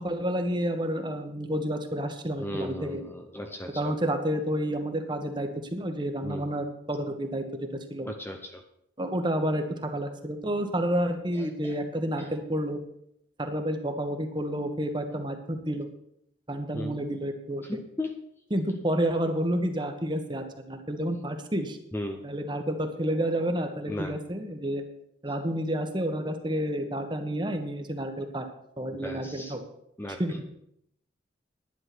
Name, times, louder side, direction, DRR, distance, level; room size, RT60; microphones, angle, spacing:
voice 1, 0.0-3.0 3.7-7.4 7.7-8.1 9.0-12.8 13.4-15.9 16.5-17.8 18.5-21.8 22.2-24.8 25.2-28.5 28.8-29.6 30.1-30.4, right 1 dB, 25° right, 6 dB, 1.3 m, -30 dB
voice 2, 2.4-3.9 6.2-6.5 8.0-8.6 11.4-11.7 12.2-12.3 16.7-17.0 17.6-18.2 21.9-22.2 23.9-24.2 28.9-29.5 30.0-30.4, left 1 dB, 10° left, 4 dB, 0.7 m, -36 dB
11.0 x 9.9 x 6.1 m, 0.75 s
head